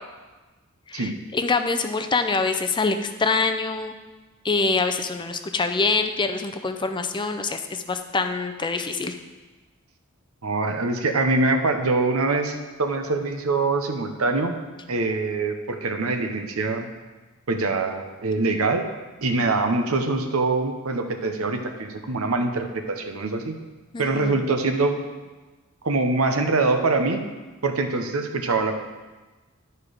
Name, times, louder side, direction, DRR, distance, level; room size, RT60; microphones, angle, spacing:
voice 1, 0.9-3.9 4.4-9.1 23.9-24.4, left 4 dB, 20° left, 7 dB, 0.5 m, -25 dB
voice 2, 10.4-14.6 14.9-16.9 17.5-18.8 19.2-23.5 24.0-25.0 25.8-27.2 27.6-28.7, right 3 dB, 75° right, 5 dB, 0.9 m, -24 dB
11.0 x 4.5 x 5.0 m, 1.2 s
head